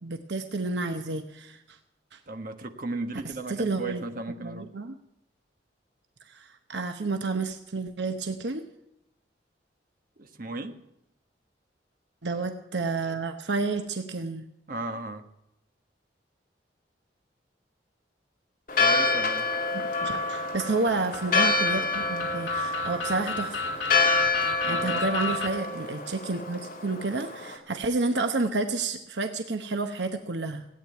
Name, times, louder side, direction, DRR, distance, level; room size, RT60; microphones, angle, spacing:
voice 1, 0.0-1.8 2.1-2.2 3.5-4.0 4.4-4.9 6.2-8.6 12.2-14.4 19.7-23.8 24.4-30.7, right 3 dB, 70° right, 6 dB, 0.9 m, -30 dB
voice 2, 2.3-4.7 10.2-10.8 14.7-15.3 18.7-19.5 24.6-25.0, right 2 dB, 50° right, 6 dB, 1.3 m, -35 dB
Church bell, 18.7-27.6, left 3 dB, 50° left, 2.5 m, -27 dB
sound 1, 19.0-25.5, left 3 dB, 85° left, 2.3 m, -34 dB
17.0 x 9.1 x 9.2 m, 0.84 s
head